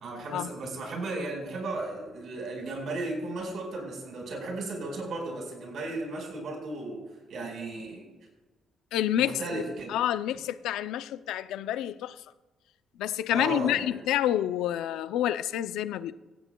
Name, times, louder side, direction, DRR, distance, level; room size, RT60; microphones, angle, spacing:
voice 1, 0.0-7.0 7.3-8.1 9.1-9.9 13.3-14.0, right 2 dB, 65° right, 2 dB, 4.7 m, -35 dB
voice 2, 8.9-9.6 9.9-12.2 13.0-16.1, left 11 dB, 90° left, 13 dB, 0.5 m, -28 dB
16.5 x 15.5 x 2.3 m, 1.2 s
cardioid pair, 90°, 0 cm